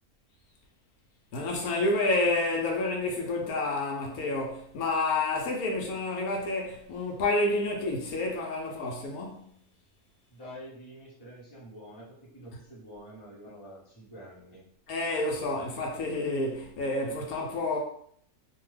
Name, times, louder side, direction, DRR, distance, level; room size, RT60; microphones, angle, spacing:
voice 1, 1.3-9.5 14.9-17.8, left 2 dB, 80° left, 1.1 m, -29 dB
voice 2, 10.3-14.7, equal, 20° left, 0.7 m, -47 dB
2.7 x 2.3 x 3.1 m
omnidirectional pair, 1.5 m